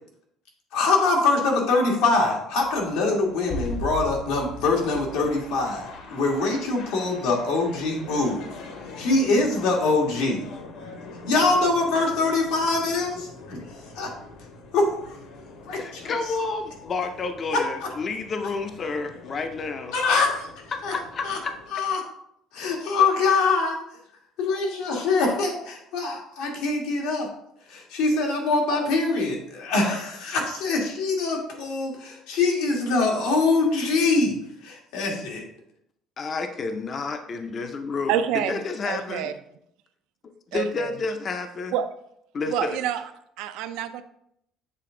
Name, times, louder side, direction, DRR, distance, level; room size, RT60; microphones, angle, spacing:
voice 1, 0.7-8.5 9.0-10.4 11.3-13.6 13.9-14.1 14.7-14.9 15.7-16.1 17.5-17.6 19.9-20.3 20.8-20.9 21.2-21.4 21.7-22.0 22.5-23.8 24.4-27.3 27.7-35.4, left 3 dB, 90° left, -1 dB, 1.7 m, -23 dB
sound 1, 2.5-21.7, left 2 dB, 65° left, 1.1 m, -41 dB
voice 2, 15.7-19.9 20.9-21.5 36.2-39.3 40.2-41.8 42.3-42.8, left 4 dB, 30° left, 7 dB, 0.5 m, -30 dB
voice 3, 38.1-39.3 40.5-40.9 41.7-41.9 42.5-43.0 43.4-44.0, right 10 dB, 80° right, 11 dB, 0.4 m, -27 dB
7.7 x 3.3 x 3.7 m, 0.74 s
cardioid pair, 150°, 0 cm